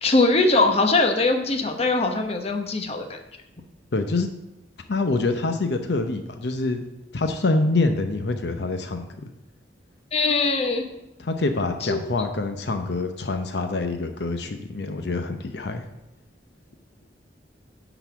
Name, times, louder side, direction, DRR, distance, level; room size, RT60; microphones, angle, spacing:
voice 1, 0.0-3.2 10.1-10.8 11.8-12.0, left 3 dB, 35° left, 4 dB, 0.9 m, -21 dB
voice 2, 3.9-4.3 4.9-6.8 7.1-9.3 11.2-15.8, left 3 dB, 70° left, 6 dB, 0.7 m, -25 dB
10.5 x 4.0 x 6.8 m, 0.91 s
head